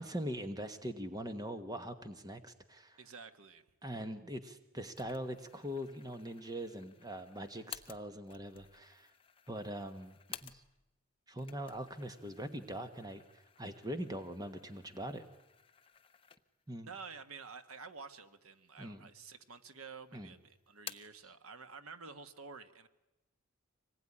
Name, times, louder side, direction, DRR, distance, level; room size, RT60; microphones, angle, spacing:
voice 1, 0.0-3.0 3.8-9.1 9.5-10.6 11.3-13.2 13.6-15.3 16.7-16.9 18.8-19.1 20.1-20.3, equal, 15° right, 9 dB, 1.3 m, -42 dB
voice 2, 3.0-3.6 16.8-22.9, right 5 dB, 85° right, 10 dB, 1.5 m, -50 dB
sound 1, 5.0-11.0 11.3-16.8 17.2-17.3 18.1-18.8 19.1-19.9 20.1-21.3, left 9 dB, 25° left, 0.8 m, -54 dB
25.5 x 20.0 x 9.9 m, 0.99 s
head